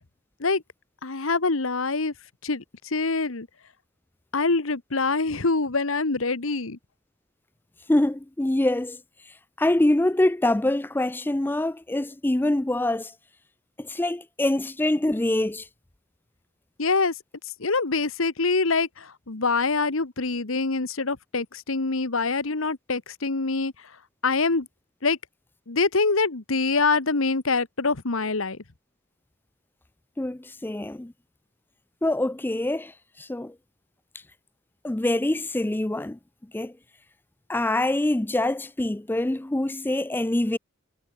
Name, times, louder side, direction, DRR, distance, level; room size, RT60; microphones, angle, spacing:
voice 1, 1.0-2.1 2.4-3.5 4.3-6.8 16.8-17.1 17.6-23.7 24.2-24.7 25.0-25.2 25.7-28.6, left 3 dB, 80° left, 1.4 m, -25 dB
voice 2, 7.9-9.0 9.3-13.1 13.8-15.7 30.2-31.1 32.0-33.5 34.8-36.2 36.5-36.7 37.5-40.6, left 1 dB, 10° left, 0.4 m, -25 dB
head